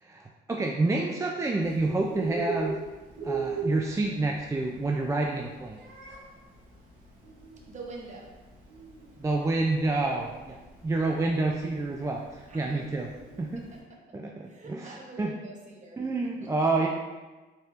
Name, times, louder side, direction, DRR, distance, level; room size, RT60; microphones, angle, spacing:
voice 1, 0.0-2.8 3.2-5.8 9.2-10.6 10.8-13.1 13.4-13.7 14.1-15.3 16.0-16.9, right 2 dB, 15° right, 0 dB, 0.3 m, -28 dB
Bird, 1.6-13.8, right 4 dB, 75° right, 1.4 m, -39 dB
voice 2, 7.7-8.3 12.5-12.9 13.7-14.0 14.5-16.5, right 3 dB, 35° right, -1 dB, 0.9 m, -45 dB
4.2 x 3.4 x 2.5 m, 1.2 s
cardioid pair, 90°, 20 cm